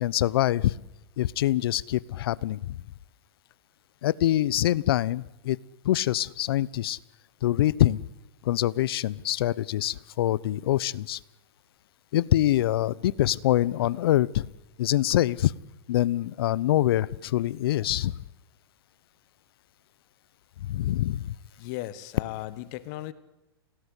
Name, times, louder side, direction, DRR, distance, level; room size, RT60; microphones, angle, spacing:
voice 1, 0.0-0.6 1.2-2.6 4.0-5.6 5.9-7.0 7.4-8.0 8.5-11.2 12.1-14.4 14.8-15.5 15.9-18.1 20.7-21.2, left 13 dB, 65° left, 23 dB, 0.9 m, -24 dB
voice 2, 21.6-23.1, left 15 dB, 45° left, 16 dB, 1.5 m, -36 dB
29.0 x 19.0 x 8.3 m, 0.99 s
hypercardioid pair, 130°, 13 cm